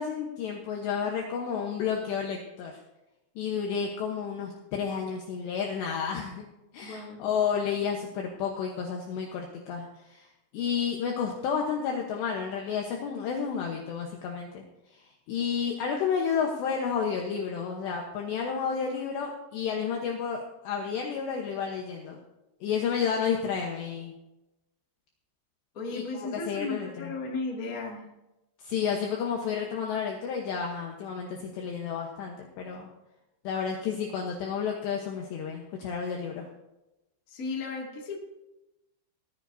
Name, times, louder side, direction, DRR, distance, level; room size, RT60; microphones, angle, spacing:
voice 1, 0.0-2.8 3.4-6.4 6.7-10.3 10.5-14.6 14.9-22.2 22.6-24.1 25.9-27.1 28.6-32.9 33.4-36.5, left 6 dB, 70° left, 0 dB, 2.8 m, -31 dB
voice 2, 6.8-7.2 25.7-28.1 37.3-38.2, left 3 dB, 55° left, -2 dB, 0.9 m, -35 dB
18.0 x 14.5 x 2.7 m, 0.97 s
omnidirectional pair, 6.0 m